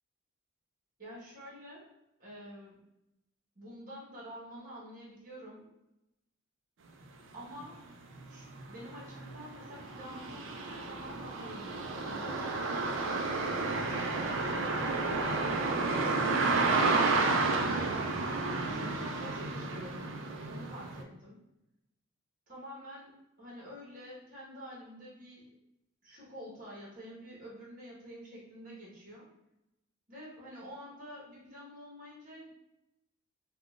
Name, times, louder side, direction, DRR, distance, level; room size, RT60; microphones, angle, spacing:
voice 1, 1.0-1.9 2.2-2.8 3.5-5.6 7.3-7.8 8.3-14.9 15.4-16.6 17.4-20.1 20.4-21.4 22.5-25.5 26.0-29.3 30.1-32.5, equal, 40° right, -5 dB, 1.1 m, -48 dB
sound 1, 7.6-7.7 8.2-21.0, right 3 dB, 65° right, 0.4 m, -31 dB
3.7 x 2.3 x 2.3 m, 0.90 s
head